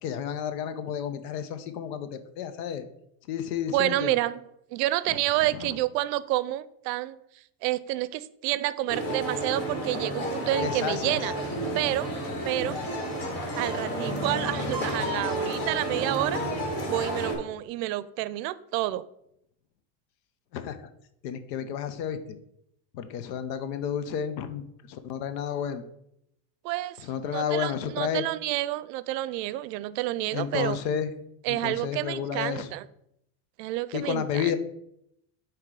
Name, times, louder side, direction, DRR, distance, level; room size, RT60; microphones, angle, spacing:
voice 1, 0.0-2.9 3.3-4.2 5.1-5.2 5.5-5.7 10.6-11.8 12.6-12.8 20.5-20.8 21.2-22.4 22.9-25.8 27.0-28.3 30.3-31.1 31.5-32.7 33.9-34.6, left 8 dB, 85° left, 0.9 m, -31 dB
voice 2, 3.7-7.2 7.6-11.3 11.8-12.1 12.4-12.8 13.5-16.4 16.9-19.0 26.6-30.8 31.4-32.8 33.6-34.6, right 16 dB, 75° right, 0.6 m, -29 dB
sound 1, 8.9-17.3, equal, 40° left, 2.4 m, -31 dB
8.7 x 3.2 x 4.7 m
supercardioid pair, 120°, 49 cm